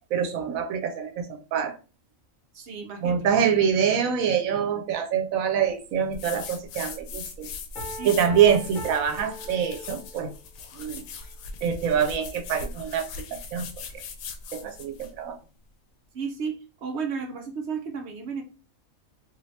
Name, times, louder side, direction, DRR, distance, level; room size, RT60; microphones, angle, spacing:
voice 1, 0.1-1.7 3.0-7.5 8.0-10.3 10.7-11.0 11.6-13.7 14.5-15.4, right 8 dB, 85° right, 6 dB, 1.0 m, -25 dB
voice 2, 2.5-3.2 7.9-8.1 14.6-14.7 16.1-16.5 16.8-18.4, right 5 dB, 65° right, 3 dB, 0.8 m, -33 dB
sound 1, 6.1-15.2, left 5 dB, 80° left, 1.0 m, -40 dB
Piano, 7.7-10.3, equal, 35° left, 1.1 m, -40 dB
2.7 x 2.6 x 3.1 m, 0.35 s
omnidirectional pair, 1.4 m